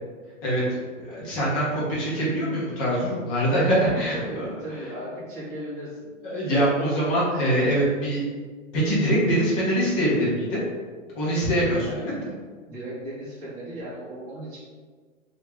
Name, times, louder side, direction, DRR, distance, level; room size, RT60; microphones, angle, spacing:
voice 1, 1.0-4.2 6.2-8.2 8.7-10.6 11.1-12.0, right 1 dB, 15° left, -7 dB, 0.5 m, -23 dB
voice 2, 2.9-3.3 3.8-6.0 11.8-12.1 12.7-14.6, equal, 20° right, -10 dB, 1.3 m, -36 dB
3.1 x 2.3 x 3.2 m, 1.5 s
hypercardioid pair, 155°, 40 cm